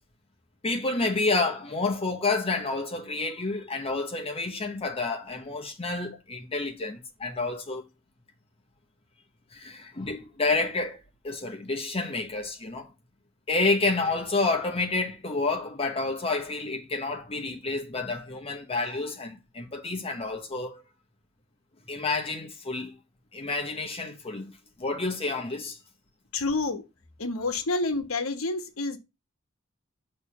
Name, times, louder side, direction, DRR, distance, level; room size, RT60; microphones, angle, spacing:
voice 1, 0.6-7.8 9.5-12.9 13.5-20.8 21.9-22.9 23.3-24.5 24.8-25.8, left 3 dB, 30° left, 0.9 m, -29 dB
voice 2, 26.3-26.8 27.2-29.0, left 3 dB, 70° left, 1.1 m, -28 dB
6.7 x 3.2 x 5.5 m
head